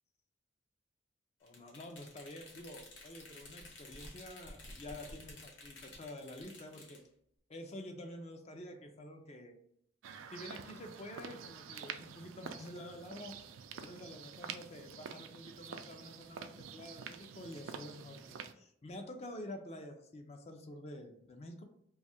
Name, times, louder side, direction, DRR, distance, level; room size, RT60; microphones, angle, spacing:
voice 1, 1.4-7.0 7.5-9.6 10.3-13.3 13.7-21.6, left 1 dB, 35° left, 5 dB, 0.4 m, -48 dB
sound 1, 1.5-7.0, left 2 dB, 70° left, 1.0 m, -53 dB
sound 2, 10.0-18.5, right 7 dB, 90° right, 0.3 m, -48 dB
2.6 x 2.3 x 4.1 m, 0.70 s
head